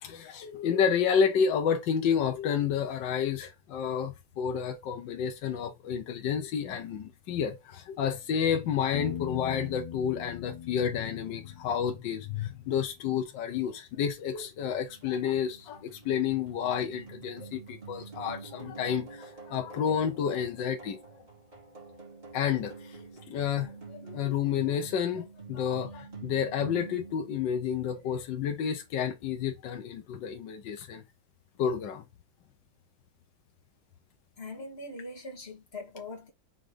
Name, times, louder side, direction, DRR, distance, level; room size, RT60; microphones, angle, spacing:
voice 1, 0.0-21.0 22.3-31.0 31.6-32.1, left 7 dB, 75° left, 1.6 m, -30 dB
Piano, 8.9-12.6, left 8 dB, 55° left, 0.4 m, -41 dB
sound 1, 14.0-28.2, right 4 dB, 20° right, 2.6 m, -47 dB
voice 2, 34.4-36.3, left 2 dB, 35° left, 1.8 m, -41 dB
5.1 x 3.9 x 5.0 m
omnidirectional pair, 2.1 m